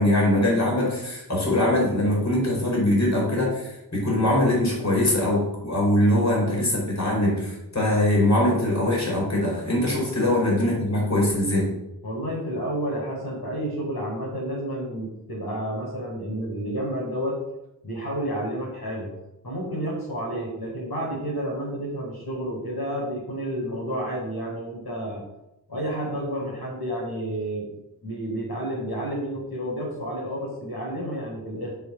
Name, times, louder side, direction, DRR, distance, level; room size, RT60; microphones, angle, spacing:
voice 1, 0.0-11.7, left 1 dB, 45° left, -3 dB, 4.8 m, -22 dB
voice 2, 12.0-17.4 17.8-19.1 19.4-25.2 25.7-27.7 28.0-31.7, right 1 dB, 75° left, -3 dB, 4.6 m, -30 dB
8.4 x 6.5 x 7.6 m, 0.88 s
cardioid pair, 50°, 38 cm